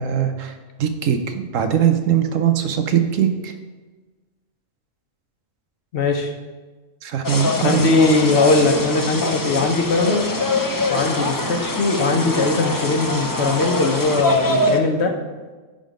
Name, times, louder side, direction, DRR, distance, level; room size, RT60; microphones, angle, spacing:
voice 1, 0.0-3.5 7.0-7.8, right 9 dB, 85° right, 8 dB, 1.1 m, -21 dB
voice 2, 5.9-6.3 7.6-10.3 10.9-15.2, left 3 dB, 60° left, 4 dB, 1.1 m, -20 dB
sound 1, 7.2-14.8, left 2 dB, 25° left, 0.5 m, -23 dB
10.5 x 3.8 x 5.1 m, 1.3 s
omnidirectional pair, 1.3 m